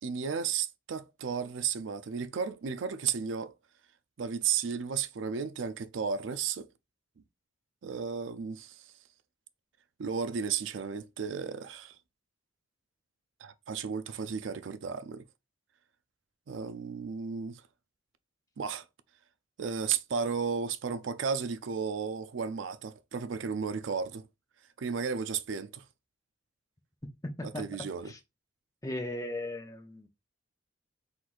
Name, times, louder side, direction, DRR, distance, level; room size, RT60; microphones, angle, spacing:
voice 1, 0.0-3.5 4.2-6.7 7.8-8.9 10.0-12.0 13.4-15.2 16.5-17.6 18.6-18.8 19.6-24.3 24.8-25.8 27.4-28.1, right 6 dB, 75° right, 0.4 m, -34 dB
voice 2, 27.2-27.7 28.1-28.2 28.8-30.1, left 1 dB, 15° left, 0.7 m, -37 dB
4.3 x 4.0 x 2.5 m
head